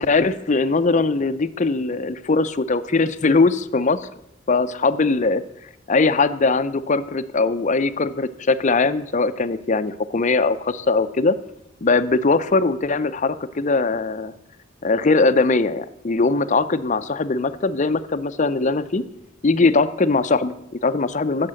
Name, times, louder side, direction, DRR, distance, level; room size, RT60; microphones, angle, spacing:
voice 1, 0.0-4.1 4.5-5.4 5.9-11.4 11.8-14.3 14.8-19.0 19.4-21.5, left 3 dB, 40° left, 13 dB, 0.6 m, -20 dB
15.5 x 6.7 x 7.6 m, 0.86 s
head